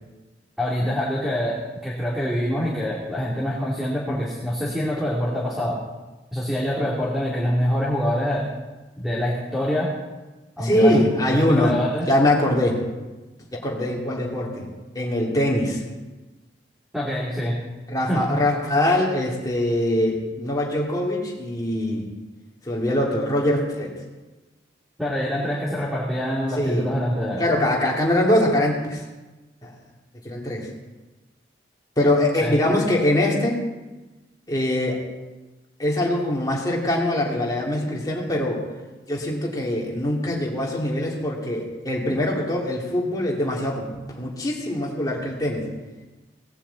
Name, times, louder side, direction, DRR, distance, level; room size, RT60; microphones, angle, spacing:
voice 1, 0.6-5.8 6.3-8.4 9.0-9.9 10.6-11.0 11.3-12.1 16.9-17.6 18.1-18.3 25.0-27.5 32.4-32.6, equal, ahead, -6 dB, 2.5 m, -25 dB
voice 2, 10.6-11.8 12.1-12.8 13.6-14.7 14.9-15.8 17.9-22.0 22.6-23.9 26.6-26.9 27.4-29.0 29.6-29.7 30.2-30.7 32.0-33.6 34.5-35.0 35.8-38.6 39.1-45.7, left 1 dB, 20° left, -2 dB, 2.6 m, -23 dB
18.0 x 7.1 x 8.2 m, 1.2 s
head